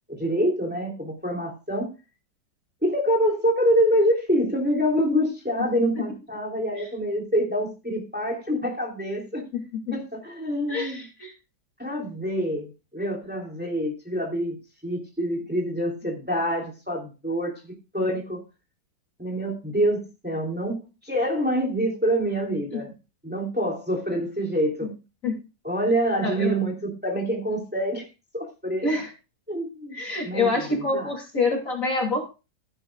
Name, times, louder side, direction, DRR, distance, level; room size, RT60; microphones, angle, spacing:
voice 1, 0.1-1.9 2.8-9.4 9.9-11.0 11.8-14.6 14.8-18.4 19.2-22.9 23.2-24.9 25.6-28.0 28.3-28.9 29.5-30.0 30.2-31.1, equal, 5° right, -1 dB, 3.0 m, -26 dB
voice 2, 10.7-11.3 24.8-24.9 25.2-25.4 26.2-26.5 28.8-29.1 29.9-32.3, left 3 dB, 45° left, 1 dB, 3.3 m, -26 dB
14.5 x 11.0 x 2.4 m, 0.29 s
omnidirectional pair, 1.9 m